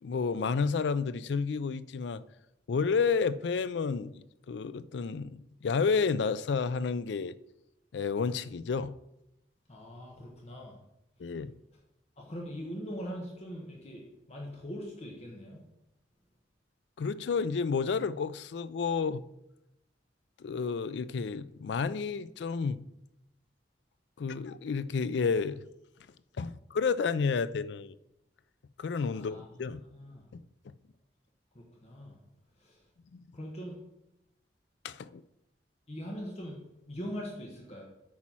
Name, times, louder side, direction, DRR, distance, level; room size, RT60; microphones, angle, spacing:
voice 1, 0.0-2.2 2.7-7.4 7.9-8.9 11.2-11.5 17.0-19.2 20.4-22.8 24.2-25.6 26.4-27.9 28.8-29.8 34.8-35.2, left 5 dB, 75° left, 0.4 m, -31 dB
voice 2, 9.7-10.8 12.2-14.0 14.3-15.6 29.1-29.5 29.9-30.2 31.5-32.2 32.6-32.8 33.3-33.8 35.9-36.6 36.9-37.8, equal, 35° left, 1.2 m, -41 dB
8.4 x 4.3 x 6.1 m
head